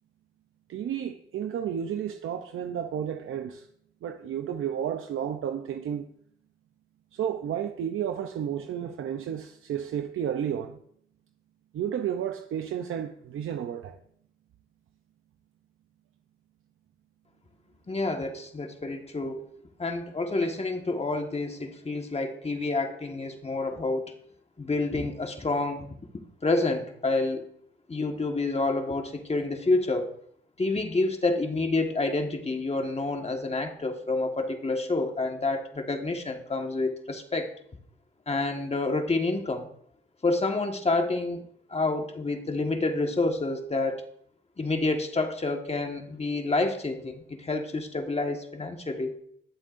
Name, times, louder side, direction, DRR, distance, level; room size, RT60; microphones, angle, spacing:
voice 1, 0.7-3.7 4.0-6.1 7.1-10.8 11.7-14.0, right 9 dB, 80° right, 0.6 m, -32 dB
voice 2, 17.9-19.4 19.8-24.1 24.6-25.9 26.4-27.5 27.9-30.1 30.6-37.5 38.3-39.7 40.2-41.4 41.7-44.0 44.6-49.1, left 3 dB, 30° left, 1.5 m, -28 dB
21.0 x 7.5 x 2.6 m
cardioid pair, 75°, 21 cm